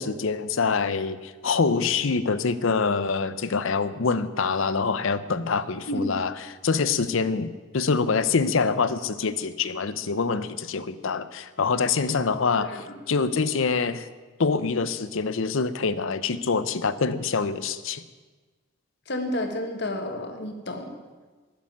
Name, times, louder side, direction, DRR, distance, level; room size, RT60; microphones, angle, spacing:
voice 1, 0.0-6.3 6.6-7.5 7.7-14.1 14.4-18.0, left 4 dB, 70° left, 14 dB, 0.6 m, -25 dB
voice 2, 12.6-13.0 19.1-20.9, left 1 dB, 55° left, 4 dB, 1.6 m, -31 dB
12.5 x 6.9 x 9.2 m, 1.3 s
head